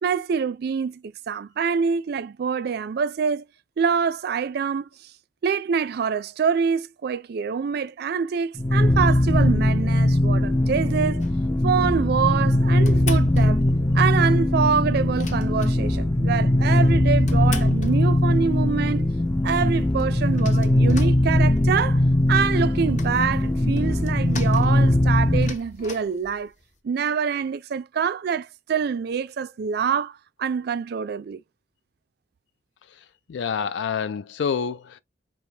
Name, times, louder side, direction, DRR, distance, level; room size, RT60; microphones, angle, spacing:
voice 1, 0.0-3.5 3.8-4.9 5.4-11.3 11.6-13.6 13.9-19.1 19.4-22.0 22.3-26.5 26.8-31.4, right 6 dB, 60° right, 0.4 m, -25 dB
sound 1, 8.6-25.6, left 1 dB, 15° left, 0.4 m, -20 dB
sound 2, 11.2-11.6 12.2-13.9 14.2-14.3 14.5-14.6 14.9-16.2 16.8-18.6 19.1-19.2 19.5-19.6 19.8-21.8 22.2-26.8, left 3 dB, 45° left, 0.9 m, -40 dB
voice 2, 33.3-35.0, left 6 dB, 80° left, 0.4 m, -27 dB
4.5 x 3.3 x 2.8 m
head